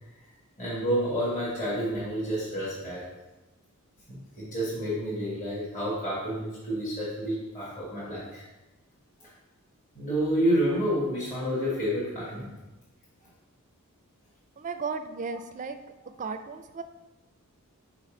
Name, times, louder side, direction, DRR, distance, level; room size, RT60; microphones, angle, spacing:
voice 1, 0.6-3.1 4.1-8.4 9.9-12.5, equal, 35° left, -9 dB, 1.6 m, -29 dB
voice 2, 14.6-15.8 16.2-16.8, right 5 dB, 35° right, 8 dB, 0.4 m, -34 dB
5.0 x 4.1 x 5.0 m, 1.0 s
head